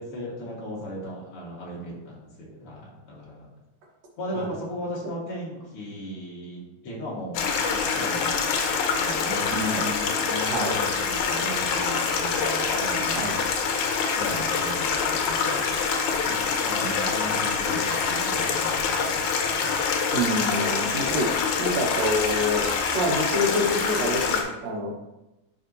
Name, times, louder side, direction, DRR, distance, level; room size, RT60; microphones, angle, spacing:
voice 1, 0.0-3.5 4.2-9.9 10.2-13.3 14.0-19.8, equal, 50° left, -4 dB, 2.3 m, -37 dB
Stream, 7.4-24.4, left 5 dB, 85° left, 2.2 m, -25 dB
voice 2, 9.5-10.1 10.5-10.7 13.2-13.4 16.1-16.5 20.1-21.3 21.6-24.9, equal, 70° right, -1 dB, 2.3 m, -27 dB
10.5 x 4.3 x 2.7 m, 0.97 s
omnidirectional pair, 3.4 m